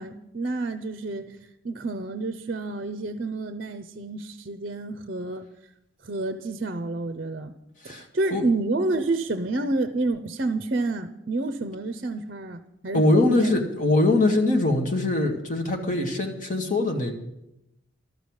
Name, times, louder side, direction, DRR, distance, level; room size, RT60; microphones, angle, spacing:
voice 1, 0.0-1.4 1.6-5.4 6.0-7.6 7.8-13.5, right 2 dB, 45° right, 10 dB, 0.6 m, -29 dB
voice 2, 12.9-17.1, left 2 dB, 40° left, 2 dB, 2.0 m, -22 dB
13.0 x 6.9 x 9.7 m, 0.88 s
head